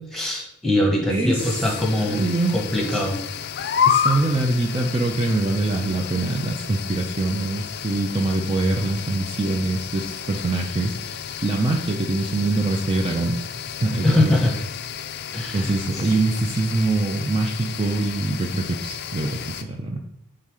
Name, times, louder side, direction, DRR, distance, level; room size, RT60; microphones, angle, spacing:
voice 1, 0.0-2.2 2.5-3.2 14.0-14.5 15.3-15.7, left 1 dB, ahead, -1 dB, 1.3 m, -22 dB
voice 2, 1.1-2.5 2.9-3.0 3.8-14.5 15.5-20.0, right 2 dB, 25° right, 1 dB, 0.5 m, -24 dB
sound 1, 1.4-19.6, left 8 dB, 50° left, 0.4 m, -31 dB
5.8 x 3.7 x 4.8 m, 0.78 s
head